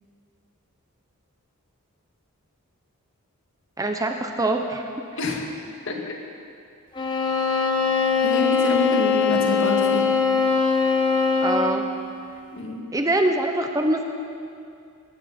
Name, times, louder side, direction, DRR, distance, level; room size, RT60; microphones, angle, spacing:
voice 1, 3.8-4.8 11.4-11.9 12.9-14.0, right 1 dB, 15° right, 4 dB, 0.8 m, -23 dB
sound 1, 7.0-11.8, left 5 dB, 20° left, 1.2 m, -21 dB
voice 2, 8.2-10.1 12.5-12.8, left 2 dB, 60° left, 0 dB, 2.1 m, -27 dB
19.0 x 14.5 x 4.4 m, 2.4 s
head